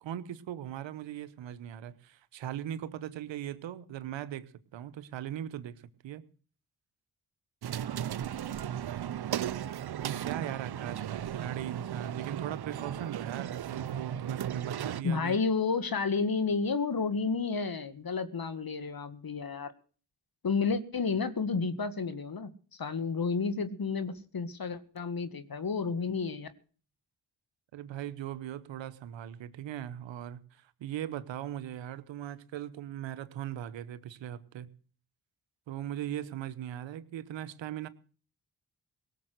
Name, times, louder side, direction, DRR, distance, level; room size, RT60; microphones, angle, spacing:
voice 1, 0.0-6.2 10.0-15.4 27.7-34.7 35.7-37.9, right 11 dB, 90° right, 15 dB, 1.0 m, -39 dB
sound 1, 7.6-15.0, right 10 dB, 60° right, 0.8 m, -36 dB
voice 2, 15.0-19.7 20.4-26.5, left 4 dB, 50° left, 12 dB, 1.9 m, -31 dB
18.0 x 7.0 x 7.9 m, 0.41 s
supercardioid pair, 45°, 44 cm